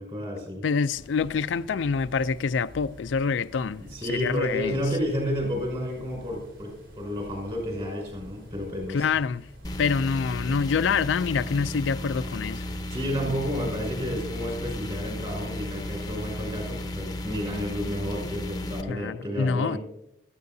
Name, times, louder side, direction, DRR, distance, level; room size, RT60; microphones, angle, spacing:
voice 1, 0.0-0.7 3.8-9.1 12.9-19.8, equal, 30° right, 5.7 m, -31 dB
voice 2, 0.6-4.8 8.9-9.5 9.8-12.6 18.9-19.8, left 5 dB, 85° left, 0.4 m, -26 dB
sound 1, 0.9-18.7, equal, 80° right, 4.2 m, -48 dB
sound 2, 9.6-18.8, left 1 dB, 20° left, 0.7 m, -34 dB
16.0 x 13.5 x 2.7 m
head